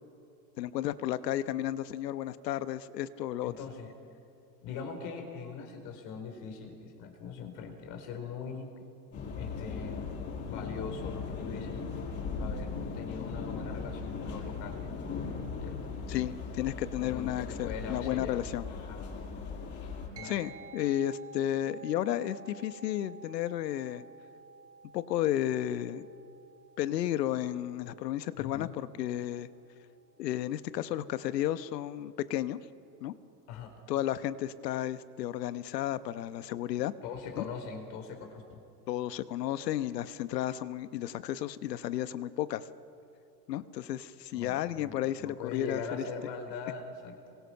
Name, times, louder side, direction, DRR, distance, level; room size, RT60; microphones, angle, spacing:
voice 1, 0.6-3.5 16.1-18.7 20.2-24.0 24.9-26.1 26.8-29.5 30.2-32.6 33.0-33.1 33.9-36.9 37.4-37.5 38.9-42.7 43.5-45.8, left 12 dB, 75° left, 13 dB, 1.2 m, -33 dB
voice 2, 3.4-3.9 4.6-8.7 9.4-10.2 10.5-11.8 12.4-14.8 15.6-15.8 17.0-18.4 18.8-19.0 20.1-20.4 28.4-28.7 33.5-33.7 37.0-38.6 44.3-47.3, left 5 dB, 45° left, 5 dB, 4.4 m, -41 dB
sound 1, 9.1-20.1, left 4 dB, 30° left, 7.8 m, -38 dB
sound 2, 20.2-29.9, right 5 dB, 25° right, 2.6 m, -52 dB
27.0 x 23.5 x 5.9 m, 2.8 s
supercardioid pair, 135°, 49 cm